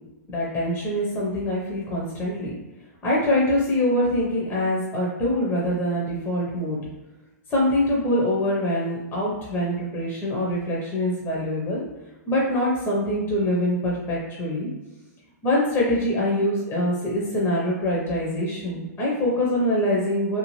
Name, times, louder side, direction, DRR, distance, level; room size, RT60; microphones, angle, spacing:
voice 1, 0.3-2.5 3.0-6.8 7.5-11.8 12.3-14.7 15.4-20.4, left 1 dB, 20° left, -4 dB, 0.7 m, -24 dB
2.7 x 2.4 x 3.0 m, 1.1 s
hypercardioid pair, 135°, 9 cm